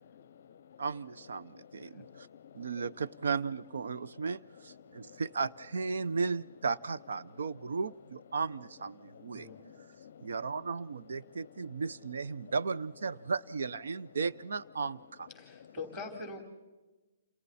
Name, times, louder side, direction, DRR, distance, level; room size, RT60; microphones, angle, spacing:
voice 1, 0.0-0.8 1.4-3.1 3.8-4.3 4.7-5.2 5.9-6.2 7.2-7.9 8.9-10.7 11.2-11.9 12.3-12.6 13.2-13.3 14.0-14.1 15.3-15.8, left 8 dB, 45° left, 18 dB, 0.7 m, -55 dB
voice 2, 0.8-2.3 2.5-9.5 10.2-15.3, right 5 dB, 70° right, 14 dB, 0.6 m, -35 dB
voice 3, 15.4-16.4, left 3 dB, ahead, 4 dB, 3.5 m, -43 dB
30.0 x 28.5 x 4.2 m, 1.2 s
hypercardioid pair, 175°, 0 cm